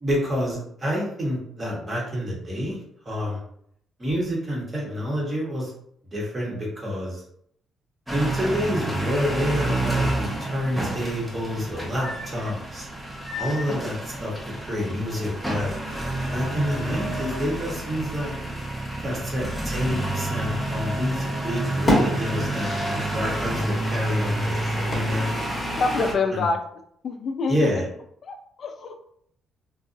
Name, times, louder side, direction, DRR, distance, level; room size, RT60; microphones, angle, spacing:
voice 1, 0.0-2.8 3.0-3.4 4.0-5.7 6.1-7.2 8.1-12.9 13.4-15.7 16.3-18.3 19.0-25.3 26.3-26.4 27.5-27.8, equal, 30° right, -4 dB, 1.1 m, -28 dB
sound 1, 8.1-26.1, right 1 dB, 5° right, 0.6 m, -29 dB
sound 2, 20.6-21.3 21.6-23.3 23.5-23.6 24.9-25.6, left 1 dB, 25° left, 1.1 m, -27 dB
voice 2, 25.8-26.6 27.0-27.8 28.2-29.1, left 4 dB, 55° left, 6 dB, 0.3 m, -26 dB
2.6 x 2.3 x 2.5 m, 0.69 s
cardioid pair, 90°, 0 cm